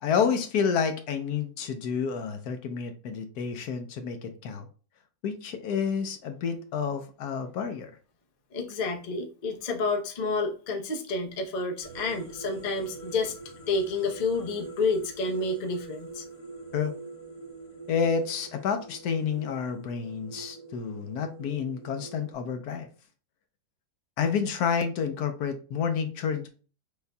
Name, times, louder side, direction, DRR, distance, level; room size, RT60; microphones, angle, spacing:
voice 1, 0.0-4.7 5.2-7.9 16.7-16.9 17.9-22.9 24.2-26.5, left 6 dB, 75° left, 7 dB, 1.1 m, -29 dB
voice 2, 8.5-13.4 13.7-16.2, left 3 dB, 40° left, 1 dB, 0.7 m, -29 dB
sound 1, 11.8-22.3, right 3 dB, 60° left, 1.9 m, -44 dB
6.5 x 2.6 x 2.2 m, 0.37 s
omnidirectional pair, 1.7 m